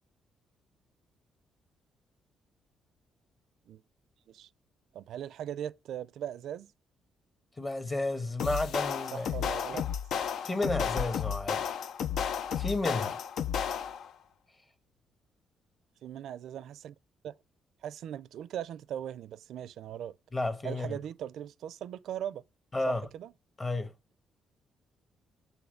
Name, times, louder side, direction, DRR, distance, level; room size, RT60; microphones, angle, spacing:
voice 1, 4.9-6.7 9.1-9.9 16.0-16.9 17.2-17.3 17.8-20.2 20.6-22.4 22.9-23.3, right 10 dB, 75° right, 0.4 m, -39 dB
voice 2, 7.6-9.3 10.4-11.6 12.6-13.2 20.3-21.0 22.7-23.1 23.6-23.9, left 2 dB, 25° left, 1.2 m, -32 dB
sound 1, 8.4-14.1, left 8 dB, 70° left, 0.5 m, -33 dB
7.1 x 3.7 x 6.4 m
cardioid pair, 90°, 0 cm